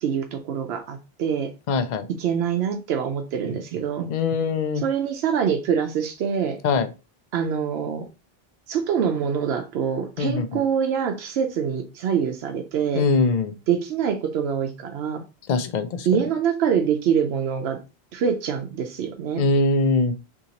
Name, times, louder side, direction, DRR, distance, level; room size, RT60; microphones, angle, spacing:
voice 1, 0.0-1.5 2.2-4.1 4.8-6.6 7.3-8.1 8.7-13.0 13.7-15.2 16.1-17.8 18.1-19.4, right 7 dB, 90° right, 0.8 m, -25 dB
voice 2, 1.7-2.1 4.1-4.8 6.6-6.9 10.2-10.6 12.9-13.5 15.5-16.1 19.4-20.1, left 3 dB, 55° left, 0.6 m, -22 dB
3.9 x 2.8 x 2.8 m
omnidirectional pair, 1.0 m